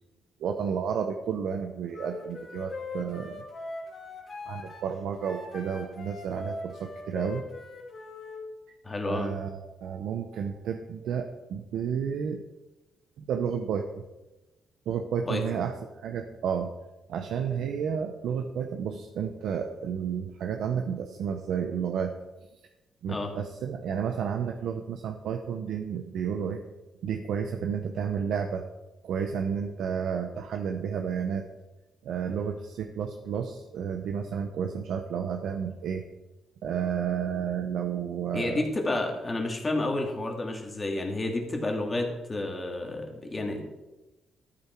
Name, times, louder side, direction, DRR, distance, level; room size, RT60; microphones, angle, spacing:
voice 1, 0.4-3.4 4.5-7.4 9.1-12.4 13.2-14.0 14.9-15.7 16.0-16.7 17.1-22.1 23.0-26.6 27.0-28.7 29.0-31.5 32.0-36.0 36.6-38.6, right 7 dB, 75° right, 5 dB, 0.9 m, -31 dB
Wind instrument woodwind instrument, 1.9-8.4, left 3 dB, 40° left, 2.9 m, -41 dB
voice 2, 8.8-9.3 15.2-15.6 23.1-23.3 38.3-43.7, left 2 dB, 25° left, 2 dB, 2.3 m, -30 dB
13.0 x 8.9 x 4.6 m, 1.0 s
cardioid pair, 115°, 0 cm